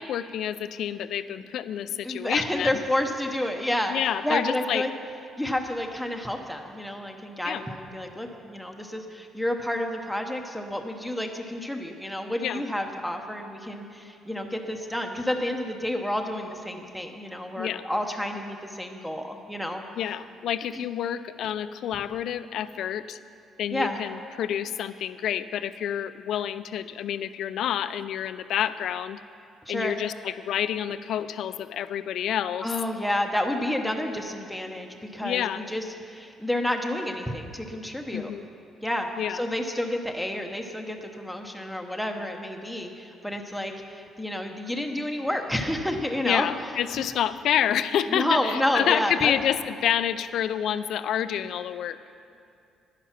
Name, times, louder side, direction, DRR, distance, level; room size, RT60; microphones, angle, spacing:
voice 1, 0.0-2.7 3.9-4.8 7.4-7.6 12.4-12.6 17.6-17.8 20.0-23.2 23.6-29.2 29.7-32.7 35.2-35.6 38.1-38.4 39.2-39.4 46.2-52.0, left 10 dB, 65° left, 14 dB, 0.4 m, -28 dB
voice 2, 2.0-4.0 4.2-4.9 5.4-19.8 20.7-20.9 23.7-24.0 29.7-29.9 32.6-38.3 38.8-46.5 46.9-47.0 48.1-49.3, left 1 dB, ahead, 2 dB, 0.8 m, -30 dB
10.5 x 10.0 x 5.8 m, 2.5 s
cardioid pair, 140°, 0 cm